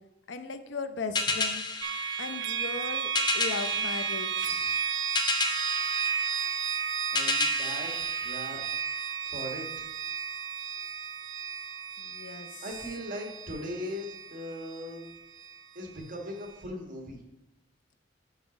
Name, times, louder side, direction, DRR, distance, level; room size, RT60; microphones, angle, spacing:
voice 1, 0.3-1.6 2.2-4.8 12.0-12.6, left 4 dB, 70° left, 10 dB, 0.6 m, -37 dB
sound 1, 1.1-9.0, left 3 dB, 25° left, 0.6 m, -33 dB
sound 2, 1.8-15.6, right 7 dB, 90° right, 0.5 m, -33 dB
voice 2, 7.1-7.9 8.2-8.6 9.3-9.9 12.6-15.0 15.7-17.2, equal, 45° right, 2 dB, 1.4 m, -39 dB
5.6 x 5.0 x 5.9 m, 1.0 s
head